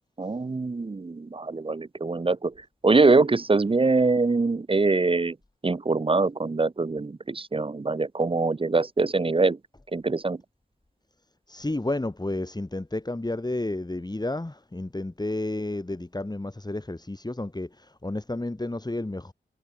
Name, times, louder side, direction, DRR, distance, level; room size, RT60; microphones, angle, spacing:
voice 1, 0.2-2.5 2.8-5.4 5.6-9.6 9.9-10.4, right 3 dB, 30° right, 0.7 m, -23 dB
voice 2, 11.5-19.3, left 2 dB, 20° left, 7.3 m, -31 dB
cardioid pair, 60°, 18 cm